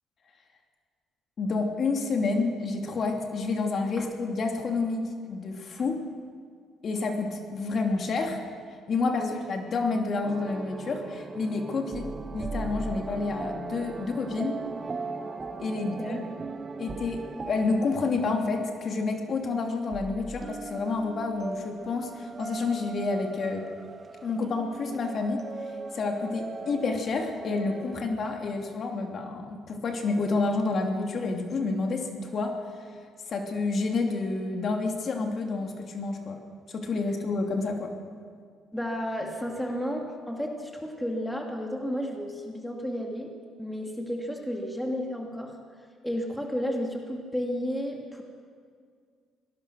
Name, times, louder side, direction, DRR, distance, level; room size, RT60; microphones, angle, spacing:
voice 1, 1.4-6.0 6.8-8.4 8.9-14.6 15.6-16.2 16.8-23.7 24.2-25.4 25.9-32.6 33.3-36.4 36.7-37.9, left 3 dB, 40° left, 3 dB, 2.7 m, -29 dB
sound 1, 10.2-19.6 19.9-28.1, right 4 dB, 25° right, 0.9 m, -39 dB
voice 2, 15.8-16.3 38.7-43.3 43.6-45.6 46.0-48.2, equal, ahead, 1 dB, 2.3 m, -32 dB
25.0 x 18.5 x 6.4 m, 2.1 s
cardioid pair, 135°, 0 cm